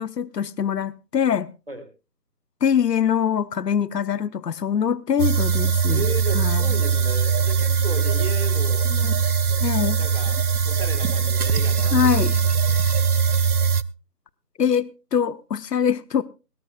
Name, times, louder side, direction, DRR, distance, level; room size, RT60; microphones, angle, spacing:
voice 1, 0.0-1.5 2.6-6.0 6.3-6.6 8.9-9.1 9.6-10.0 11.9-12.4 14.6-16.2, left 8 dB, 75° left, 0.8 m, -23 dB
sound 1, 5.2-13.8, right 6 dB, 65° right, 0.7 m, -21 dB
voice 2, 5.9-8.9 9.5-9.6 10.0-10.4 10.6-12.1 12.7-12.8, right 1 dB, 35° right, 1.6 m, -35 dB
18.5 x 17.5 x 2.3 m
figure-of-eight pair, 175°, 49 cm